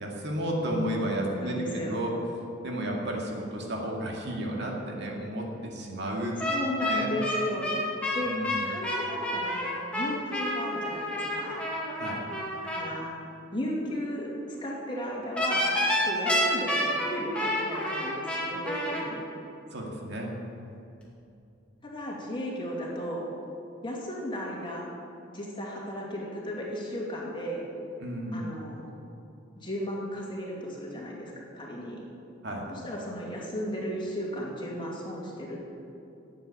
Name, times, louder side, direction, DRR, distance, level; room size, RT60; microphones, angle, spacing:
voice 1, 0.0-2.1 2.6-6.4 6.9-7.1 8.3-8.7 12.0-12.2 19.7-20.3 28.0-28.5 32.4-32.6, right 1 dB, 60° right, -1 dB, 2.2 m, -32 dB
voice 2, 1.2-1.9 6.4-7.9 8.1-11.6 12.7-13.1 13.5-15.7 16.0-19.3 21.8-23.3 23.8-24.9 25.3-27.7 28.3-28.9 29.6-32.0 32.7-35.7, equal, 25° left, -3 dB, 2.6 m, -35 dB
sound 1, 6.4-12.9 15.4-19.0, left 1 dB, 5° left, 2.3 m, -29 dB
11.5 x 8.1 x 9.0 m, 2.7 s
head